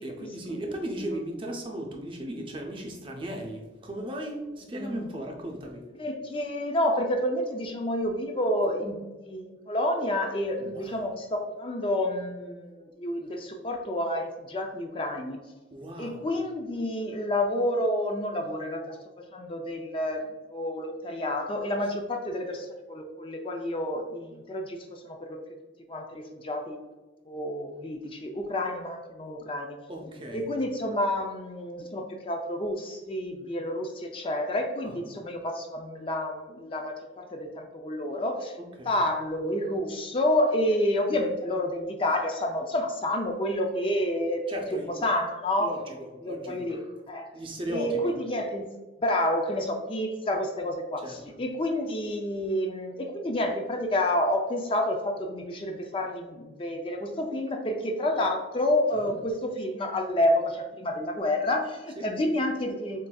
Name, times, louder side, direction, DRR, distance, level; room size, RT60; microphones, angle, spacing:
voice 1, 0.0-5.9 10.6-11.1 15.7-16.3 29.9-30.5 34.8-35.1 38.6-39.0 44.5-44.9 45.6-46.9 47.3-48.1 51.0-51.4 58.9-59.2 62.0-62.1, equal, 25° right, 1 dB, 0.6 m, -37 dB
voice 2, 6.0-15.4 16.0-20.3 20.5-25.4 25.9-26.8 27.3-29.8 30.3-38.6 38.9-44.4 45.0-45.7 46.2-46.8 47.1-47.3 47.7-48.7 49.0-63.1, left 1 dB, 30° left, 3 dB, 0.4 m, -29 dB
7.3 x 2.6 x 2.2 m, 1.2 s
head